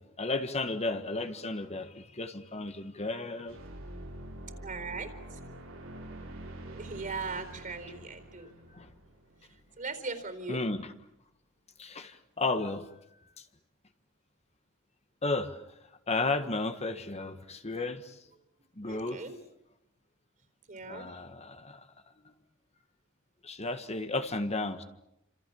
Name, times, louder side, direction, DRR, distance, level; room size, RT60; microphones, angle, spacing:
voice 1, 0.0-3.6 8.7-8.9 10.5-10.9 11.8-12.9 13.4-13.5 15.2-15.6 16.1-18.2 18.8-19.2 20.9-21.9 23.4-24.8, left 3 dB, 30° left, 1.6 m, -33 dB
sound 1, 3.5-10.1, right 1 dB, 90° right, 7.1 m, -46 dB
voice 2, 4.6-5.4 6.7-8.5 9.8-10.6 18.8-19.3 20.7-21.1, right 4 dB, 40° right, 4.2 m, -39 dB
29.5 x 27.0 x 7.2 m
head